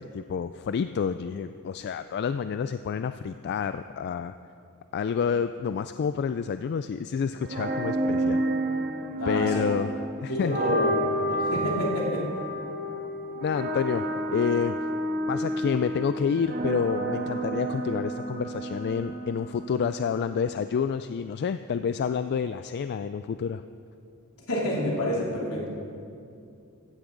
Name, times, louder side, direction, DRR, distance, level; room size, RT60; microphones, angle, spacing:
voice 1, 0.0-4.3 4.9-8.4 9.3-9.9 10.2-10.6 13.4-14.1 14.3-14.8 15.3-23.6, left 6 dB, 50° left, 11 dB, 0.3 m, -28 dB
sound 1, 7.4-20.3, right 1 dB, 45° right, 1.3 m, -30 dB
voice 2, 9.2-9.7 10.3-10.9 11.3-12.3 24.5-25.7, equal, 75° left, -3 dB, 2.9 m, -28 dB
15.5 x 14.5 x 3.9 m, 2.5 s
head